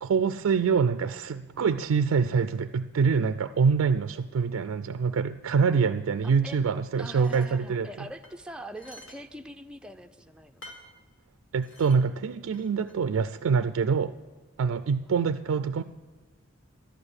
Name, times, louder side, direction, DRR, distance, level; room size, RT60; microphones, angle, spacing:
voice 1, 0.0-7.9 11.5-14.1 14.6-15.8, right 5 dB, 85° right, 12 dB, 0.4 m, -25 dB
voice 2, 6.2-6.6 7.0-10.7 15.6-15.8, right 1 dB, 5° right, 5 dB, 0.5 m, -43 dB
sound 1, 7.1-7.5 8.2-9.2 9.5-9.6 10.6-10.9 11.6-12.0 12.5-12.9, left 1 dB, 65° left, 1.7 m, -49 dB
11.5 x 9.8 x 7.9 m, 1.3 s
head